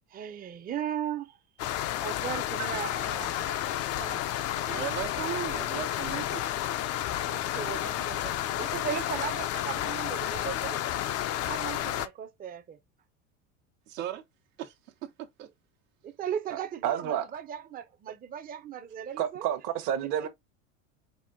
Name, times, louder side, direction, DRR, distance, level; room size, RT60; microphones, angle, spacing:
voice 1, 0.1-1.4 2.0-3.3 3.8-4.2 7.3-10.8 11.4-12.8 16.0-19.5 20.2-20.3, right 9 dB, 25° right, 0.6 m, -37 dB
sound 1, 1.6-12.1, left 12 dB, 40° left, 0.5 m, -31 dB
voice 2, 3.3-3.6 3.9-4.2 4.6-6.4 13.9-14.2 14.6-15.5, right 12 dB, 85° right, 1.2 m, -38 dB
voice 3, 16.5-17.2 19.2-20.3, right 10 dB, 55° right, 1.1 m, -30 dB
5.4 x 2.5 x 3.6 m
supercardioid pair, 100°, 38 cm